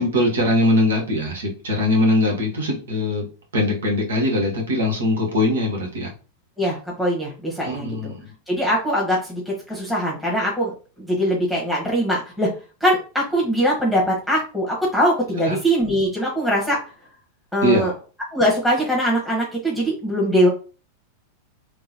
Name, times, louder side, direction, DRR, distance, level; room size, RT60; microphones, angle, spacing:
voice 1, 0.0-3.3 3.5-6.1 7.6-8.3 15.4-15.6 17.6-17.9, left 1 dB, 65° right, 1 dB, 1.3 m, -21 dB
voice 2, 6.6-8.1 8.5-12.5 12.8-16.8 17.5-17.9 18.3-20.5, equal, ahead, -4 dB, 1.5 m, -22 dB
3.7 x 3.1 x 2.9 m, 0.35 s
figure-of-eight pair, 90°, 0 cm